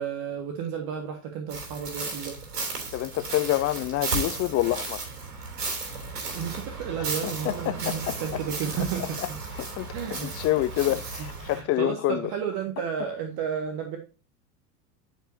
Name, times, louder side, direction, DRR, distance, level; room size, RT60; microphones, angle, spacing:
voice 1, 0.0-2.4 6.3-9.2 9.9-10.3 10.9-11.0 11.4-14.0, right 8 dB, 50° right, 1.8 m, -32 dB
sound 1, 1.5-11.6, right 3 dB, 85° right, 3.2 m, -34 dB
voice 2, 2.9-5.1 7.2-8.2 9.6-12.3, left 15 dB, 30° left, 0.7 m, -27 dB
12.0 x 5.4 x 2.7 m
hypercardioid pair, 85°, 46 cm